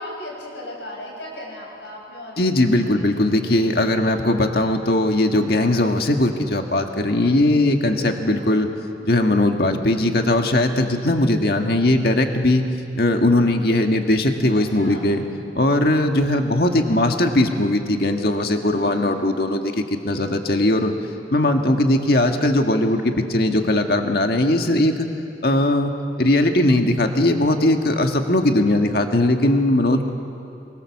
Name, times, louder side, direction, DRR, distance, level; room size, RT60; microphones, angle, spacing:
voice 1, 0.0-3.9 7.9-8.4 14.5-15.2 18.7-19.4, left 1 dB, 80° left, -2 dB, 7.0 m, -37 dB
voice 2, 2.4-8.7 9.0-12.7 12.9-15.2 15.5-20.9 21.3-25.1 25.4-25.9 26.2-30.1, left 1 dB, 55° left, 4 dB, 1.7 m, -19 dB
24.5 x 24.0 x 7.3 m, 2.6 s
head